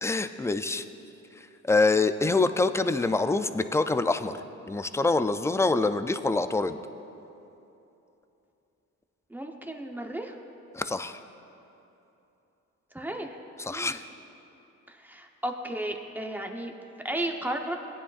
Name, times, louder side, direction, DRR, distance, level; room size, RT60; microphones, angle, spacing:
voice 1, 0.0-0.8 1.4-6.8 10.7-11.2 13.6-14.0, left 3 dB, 10° left, 10 dB, 0.3 m, -26 dB
voice 2, 9.3-10.4 12.9-13.4 13.7-14.0 14.9-16.7 17.0-17.8, right 1 dB, 5° right, 2 dB, 0.9 m, -34 dB
17.0 x 9.7 x 2.5 m, 2.9 s
cardioid pair, 90°, 30 cm